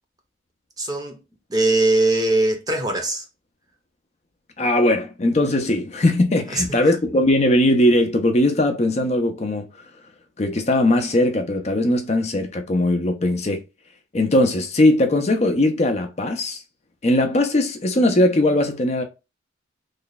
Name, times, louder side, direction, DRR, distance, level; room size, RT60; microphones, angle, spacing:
voice 1, 0.8-1.2 1.5-3.2 6.5-6.6, right 2 dB, 20° right, 0.6 m, -20 dB
voice 2, 4.6-9.7 10.4-13.6 14.1-16.6 17.0-19.0, left 1 dB, 35° left, 0.5 m, -19 dB
3.2 x 2.3 x 3.9 m
head